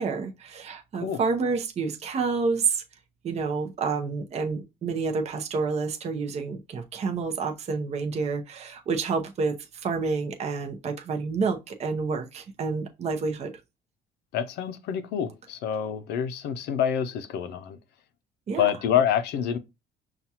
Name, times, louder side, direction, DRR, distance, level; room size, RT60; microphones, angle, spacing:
voice 1, 0.0-2.8 3.2-13.5 18.5-18.6, right 4 dB, 40° right, 0.7 m, -29 dB
voice 2, 14.3-17.8 18.6-19.6, left 9 dB, 80° left, 0.6 m, -27 dB
5.8 x 2.4 x 2.8 m
cardioid pair, 110°, 17 cm